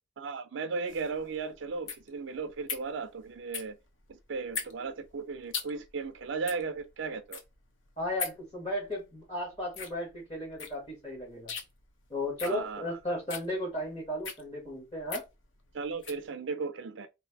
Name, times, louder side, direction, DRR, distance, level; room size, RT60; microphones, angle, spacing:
voice 1, 0.2-3.8 4.1-7.4 12.5-13.0 15.7-17.1, right 4 dB, 65° right, 0.4 m, -36 dB
sound 1, 0.9-16.3, left 5 dB, 70° left, 0.8 m, -42 dB
voice 2, 8.0-11.5 12.1-15.2, left 1 dB, 25° left, 1.3 m, -35 dB
3.3 x 2.6 x 4.5 m
head